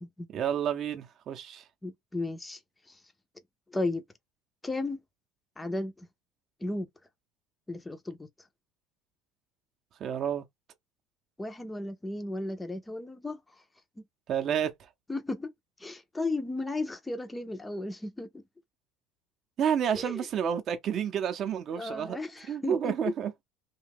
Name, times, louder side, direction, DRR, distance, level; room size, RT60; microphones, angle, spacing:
voice 1, 0.3-1.6 10.0-10.4 14.3-14.7 19.6-22.2 22.5-23.3, right 8 dB, 40° right, 0.6 m, -30 dB
voice 2, 1.8-2.6 2.9-3.0 3.7-4.0 4.6-5.0 5.6-6.1 6.6-6.9 7.7-8.3 11.4-13.4 15.1-15.5 15.8-18.4 19.9-20.2 21.8-23.0, left 2 dB, 10° left, 0.5 m, -34 dB
2.8 x 2.2 x 3.4 m
cardioid pair, 140°, 0 cm